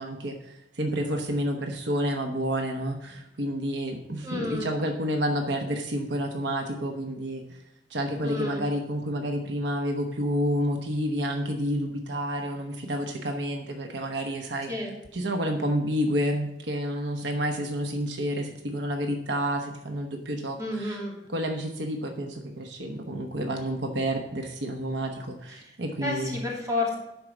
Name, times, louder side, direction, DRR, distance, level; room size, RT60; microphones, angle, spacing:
voice 1, 0.0-7.6 7.9-14.7 15.1-21.0 21.3-26.3, equal, 75° right, 4 dB, 1.0 m, -29 dB
voice 2, 4.2-4.7 8.2-8.7 14.7-14.9 20.6-21.2 25.5-25.8 26.0-26.9, left 2 dB, 20° right, -3 dB, 2.8 m, -31 dB
11.5 x 4.8 x 6.0 m, 0.86 s
head